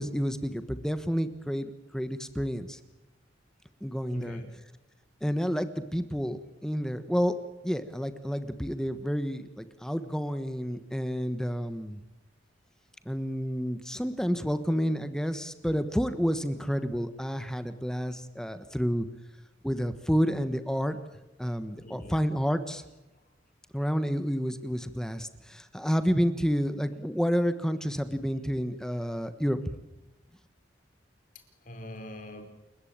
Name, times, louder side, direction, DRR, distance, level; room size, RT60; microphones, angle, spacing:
voice 1, 0.0-2.8 3.8-4.4 5.2-7.3 7.6-12.0 13.1-19.1 19.6-21.0 21.4-22.8 23.7-29.6, equal, 5° left, 10 dB, 1.2 m, -30 dB
voice 2, 4.1-4.5 21.8-22.1 31.3-32.4, left 1 dB, 45° left, 5 dB, 4.7 m, -42 dB
29.5 x 15.5 x 9.0 m, 0.95 s
head